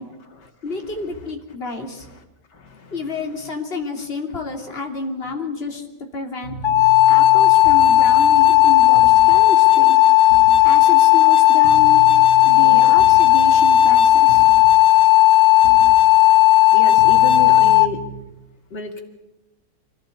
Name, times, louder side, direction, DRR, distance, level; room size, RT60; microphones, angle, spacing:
voice 1, 0.6-2.1 2.9-5.9 6.1-6.5 7.1-10.0 10.6-12.0 12.4-14.4, left 3 dB, 35° left, 2 dB, 3.1 m, -30 dB
voice 2, 2.5-2.9 12.6-12.9 16.7-18.0 18.7-19.0, left 4 dB, 80° left, 4 dB, 3.0 m, -31 dB
sound 1, 6.4-9.5 10.3-10.7 11.6-14.8 15.6-16.0 17.0-18.2, right 5 dB, 60° right, 2.7 m, -35 dB
sound 2, 6.6-17.9, left 15 dB, 50° left, 1.1 m, -13 dB
26.5 x 17.0 x 8.5 m, 1.0 s
omnidirectional pair, 1.8 m